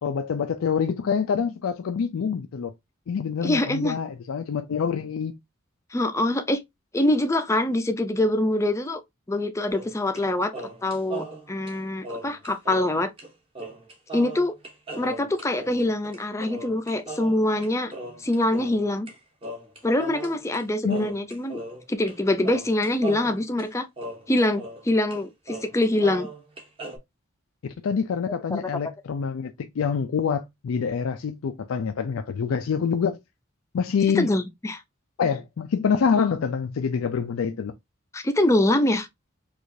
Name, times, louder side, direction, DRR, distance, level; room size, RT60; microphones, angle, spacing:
voice 1, 0.0-2.7 3.1-5.3 20.8-21.1 27.6-33.2 33.7-34.3 35.2-37.7, left 6 dB, 85° left, 0.4 m, -26 dB
voice 2, 3.4-4.0 5.9-6.6 6.9-9.0 9.3-10.5 10.8-13.1 14.1-14.5 15.0-17.9 18.2-19.1 19.8-21.6 21.9-23.9 24.3-26.3 28.5-28.7 34.2-34.8 38.1-39.1, left 1 dB, 15° left, 0.4 m, -24 dB
dum ba dum, 9.7-10.3 10.5-12.9 13.2-13.3 13.5-19.1 19.4-20.6 20.9-22.2 22.4-24.8 25.1-25.2 25.5-27.0, right 2 dB, 25° right, 0.9 m, -38 dB
4.6 x 2.4 x 2.6 m
head